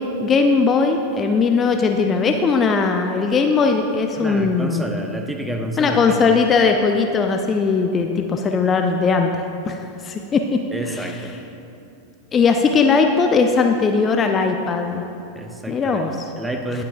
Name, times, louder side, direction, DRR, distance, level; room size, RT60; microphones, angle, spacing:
voice 1, 0.2-4.9 5.8-10.6 10.9-11.1 12.3-15.1 15.7-16.3, left 4 dB, 25° left, 4 dB, 0.5 m, -19 dB
voice 2, 4.2-6.2 10.7-11.4 15.3-16.1 16.4-16.8, right 1 dB, 5° right, 4 dB, 0.8 m, -29 dB
19.0 x 7.6 x 2.6 m, 2.8 s
figure-of-eight pair, 90°, 0 cm